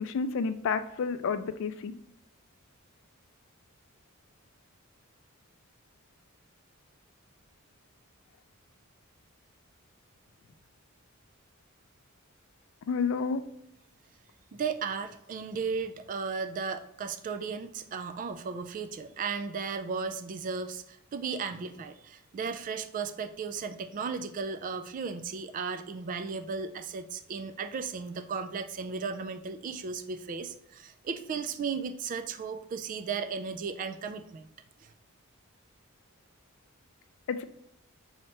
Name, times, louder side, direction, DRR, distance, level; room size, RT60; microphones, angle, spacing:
voice 1, 0.0-1.9 12.9-13.4 37.3-37.4, left 5 dB, 65° left, 11 dB, 0.4 m, -30 dB
voice 2, 14.5-34.5, right 5 dB, 40° right, 8 dB, 0.3 m, -35 dB
5.6 x 2.9 x 3.2 m, 0.78 s
head